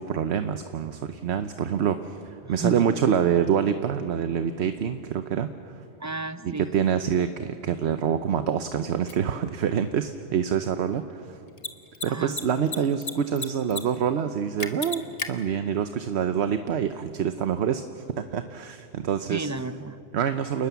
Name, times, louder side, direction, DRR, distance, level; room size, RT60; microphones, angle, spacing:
voice 1, 0.0-5.8 6.7-11.4 12.0-17.8 18.2-19.5 20.1-20.7, right 8 dB, 70° right, 9 dB, 1.0 m, -26 dB
voice 2, 2.4-3.0 6.0-6.7 12.0-12.4 19.3-20.0, right 3 dB, 25° right, 12 dB, 0.4 m, -32 dB
Mechanisms, 9.1-9.2 11.5-11.7 11.9-12.1 12.3-13.1 13.4-13.8 14.1-14.2 14.6-15.3, left 4 dB, 35° left, 1.2 m, -31 dB
28.5 x 20.0 x 7.0 m, 2.6 s
omnidirectional pair, 1.2 m